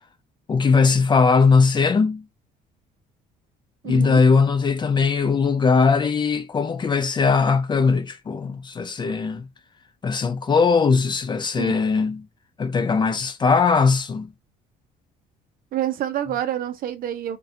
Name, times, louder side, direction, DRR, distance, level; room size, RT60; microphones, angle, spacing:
voice 1, 0.5-2.2 3.8-9.5 10.0-12.3 12.6-14.3, left 5 dB, 25° left, 0.4 m, -19 dB
voice 2, 3.8-4.2 11.6-11.8 15.7-17.4, right 11 dB, 60° right, 0.5 m, -27 dB
2.4 x 2.2 x 2.5 m
cardioid pair, 110°, 17 cm